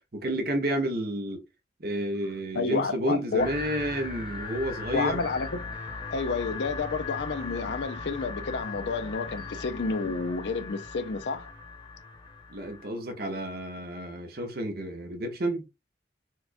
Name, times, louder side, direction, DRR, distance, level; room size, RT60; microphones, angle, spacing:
voice 1, 0.1-1.4 1.8-5.2 12.5-15.6, right 1 dB, 55° right, 0.9 m, -30 dB
voice 2, 2.5-3.5 4.9-5.7 6.1-11.5, left 4 dB, 70° left, 0.5 m, -30 dB
sound 1, 3.4-12.9, left 4 dB, 25° left, 0.9 m, -38 dB
4.5 x 2.3 x 2.5 m
head